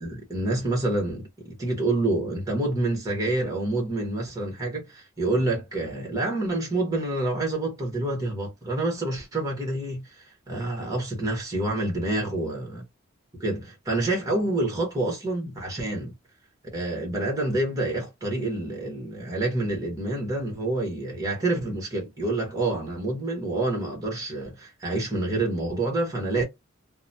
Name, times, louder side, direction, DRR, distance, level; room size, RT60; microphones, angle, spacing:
voice 1, 0.0-12.8 13.4-16.1 16.7-26.4, right 2 dB, 20° right, 1.2 m, -28 dB
2.9 x 2.2 x 2.5 m
head